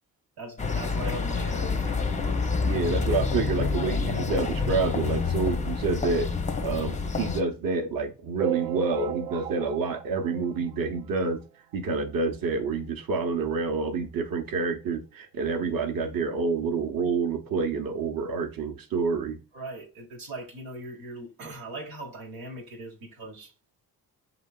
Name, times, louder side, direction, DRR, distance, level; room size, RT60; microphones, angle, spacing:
voice 1, 0.4-2.1 19.5-23.5, right 2 dB, 80° right, 1.1 m, -40 dB
sound 1, 0.6-7.4, left 4 dB, 15° left, 0.5 m, -28 dB
voice 2, 2.6-6.3 6.6-11.4 11.7-19.4, right 4 dB, 45° right, 0.9 m, -28 dB
sound 2, 8.4-11.2 11.7-11.8 12.0-12.2 12.4-12.5 13.4-13.5 14.0-14.1, right 14 dB, 65° right, 0.5 m, -35 dB
6.9 x 2.9 x 2.2 m
hypercardioid pair, 45°, 50 cm